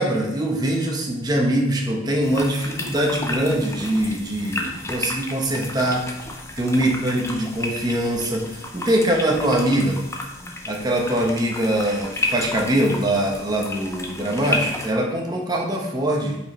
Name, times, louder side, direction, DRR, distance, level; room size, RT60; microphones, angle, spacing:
voice 1, 0.0-6.0 6.6-10.0 10.7-16.4, right 1 dB, 20° right, 0 dB, 1.0 m, -23 dB
sound 1, 2.2-14.9, left 2 dB, 15° left, 0.6 m, -32 dB
5.2 x 4.4 x 4.3 m, 0.95 s
head